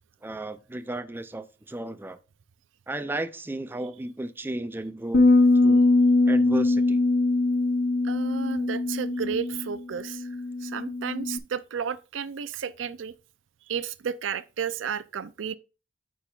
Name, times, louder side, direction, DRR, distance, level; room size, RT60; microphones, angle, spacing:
voice 1, 0.2-2.2 2.9-5.3 5.6-5.9 6.3-7.0, right 2 dB, 10° right, 0.4 m, -34 dB
sound 1, 5.1-11.4, left 2 dB, 60° left, 0.7 m, -22 dB
voice 2, 8.0-10.3 10.6-13.1 13.7-15.6, right 7 dB, 90° right, 0.4 m, -33 dB
8.9 x 5.3 x 2.4 m
head